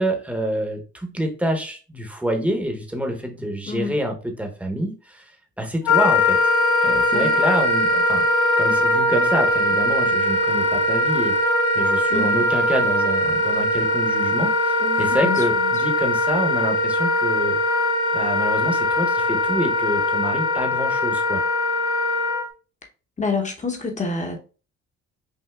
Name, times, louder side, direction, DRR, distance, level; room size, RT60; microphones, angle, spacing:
voice 1, 0.0-6.5 6.8-8.3 8.6-17.6 18.1-21.4, right 1 dB, 5° right, 1.0 m, -27 dB
Wind instrument woodwind instrument, 5.9-22.4, left 1 dB, 85° left, 1.0 m, -21 dB
voice 2, 12.1-12.4 14.8-15.4 23.2-24.4, left 3 dB, 25° left, 1.0 m, -27 dB
5.6 x 2.7 x 2.4 m
cardioid pair, 90°, 30 cm